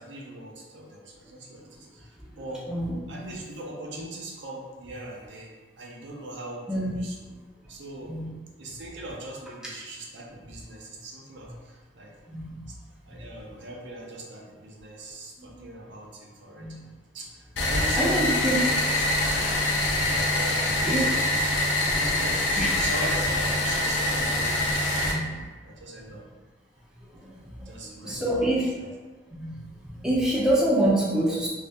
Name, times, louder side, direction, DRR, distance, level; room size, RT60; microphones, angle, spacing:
voice 1, 0.0-2.7 3.1-5.5 5.8-7.2 7.7-8.2 8.6-12.1 13.1-16.8 17.1-18.6 19.0-19.5 19.9-21.5 21.8-26.2 27.7-28.9, right 1 dB, 75° right, -2 dB, 0.6 m, -40 dB
voice 2, 12.3-12.6 15.4-15.6 16.6-16.8 18.0-18.6 20.9-21.1 22.6-22.7 25.1-25.4 27.2-27.3 27.6-27.7 28.0-28.7 29.4-29.6 29.8-31.5, right 1 dB, 5° right, -6 dB, 0.5 m, -26 dB
sound 1, 17.6-25.1, left 1 dB, 80° left, 0.6 m, -25 dB
2.7 x 2.7 x 3.4 m, 1.4 s
head